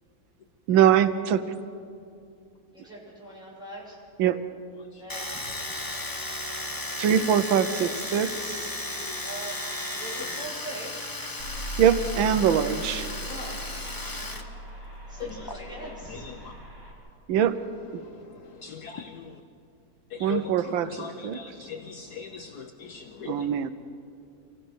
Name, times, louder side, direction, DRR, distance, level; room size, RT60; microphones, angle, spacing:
voice 1, 0.7-1.5 4.2-4.4 7.0-8.7 11.8-13.1 17.3-17.6 20.2-21.4 23.3-23.7, right 9 dB, 85° right, 12 dB, 1.5 m, -23 dB
voice 2, 2.7-4.0 5.0-5.4 9.2-9.6 9.9-10.9 13.3-14.6 15.1-16.2, right 1 dB, ahead, -6 dB, 7.1 m, -42 dB
Domestic sounds home sounds, 5.1-14.4 14.7-15.5, left 2 dB, 20° left, 0.6 m, -35 dB
sound 1, 11.4-16.9, right 1 dB, 60° right, 5.7 m, -39 dB
voice 3, 18.6-19.4 20.1-23.5, left 6 dB, 60° left, 5 dB, 1.2 m, -39 dB
25.5 x 17.0 x 6.3 m, 2.5 s
omnidirectional pair, 2.1 m